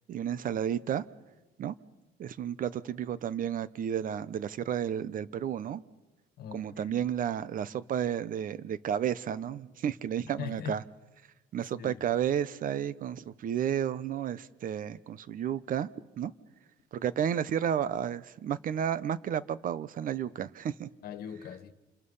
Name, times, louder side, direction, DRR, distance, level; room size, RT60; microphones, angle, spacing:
voice 1, 0.1-1.0 1.6-1.7 2.2-5.8 6.5-10.8 11.5-15.9 16.2-16.3 16.9-20.9, right 9 dB, 55° right, 1.0 m, -32 dB
voice 2, 6.4-6.9 10.4-10.7 11.7-12.1 21.0-21.7, left 9 dB, 65° left, 1.7 m, -40 dB
28.0 x 27.5 x 5.6 m
cardioid pair, 110°, 17 cm